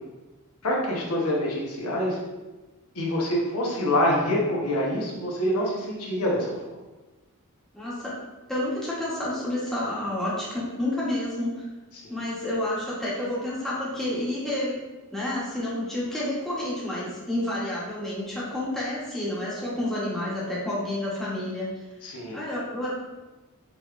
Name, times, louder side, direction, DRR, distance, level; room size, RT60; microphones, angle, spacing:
voice 1, 0.6-2.2 2.9-6.8 11.9-12.0 22.0-22.4, left 1 dB, 80° left, -3 dB, 0.9 m, -26 dB
voice 2, 7.7-8.1 8.5-11.6 12.1-14.7 15.1-21.7 22.3-23.0, left 1 dB, ahead, -8 dB, 1.0 m, -29 dB
5.2 x 3.1 x 2.4 m, 1.2 s
head